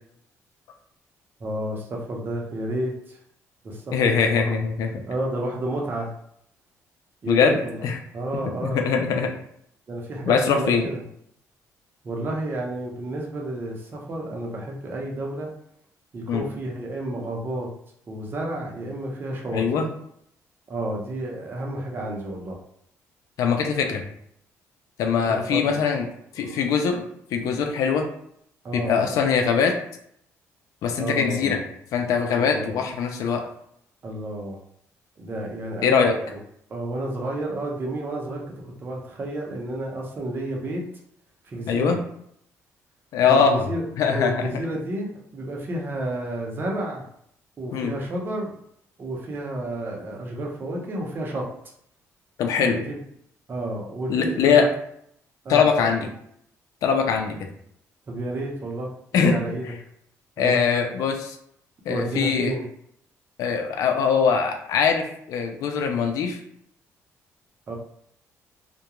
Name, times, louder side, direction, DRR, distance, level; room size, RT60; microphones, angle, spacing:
voice 1, 1.4-3.2 3.6-4.5 5.1-6.1 7.2-7.9 8.1-8.8 9.3-9.4 9.9-11.0 12.0-15.5 16.1-17.7 18.1-19.8 20.7-22.6 25.3-25.8 26.4-26.6 28.6-29.1 31.0-31.6 32.3-32.8 34.0-34.6 35.2-36.4 36.7-38.4 38.8-40.8 41.4-42.0 43.2-43.8 44.1-47.0 47.6-48.5 49.0-51.5 52.6-53.0 53.5-54.7 55.4-56.1 58.1-59.7 60.4-60.7 61.9-62.6 67.7-67.8, right 1 dB, 35° right, -1 dB, 0.7 m, -31 dB
voice 2, 3.9-4.9 7.3-8.0 8.6-9.3 10.2-10.9 16.3-16.4 19.5-19.9 23.4-24.0 25.0-26.0 26.4-27.0 27.3-28.1 28.7-29.7 30.8-31.6 31.9-33.4 35.8-36.1 41.7-42.0 43.1-43.7 44.0-44.5 47.7-47.9 52.4-52.8 54.1-54.6 55.5-56.1 56.8-57.4 59.1-59.4 60.4-61.4 61.9-62.5 63.4-66.4, left 6 dB, 75° left, 4 dB, 0.5 m, -22 dB
2.3 x 2.2 x 2.9 m, 0.70 s
cardioid pair, 115°, 6 cm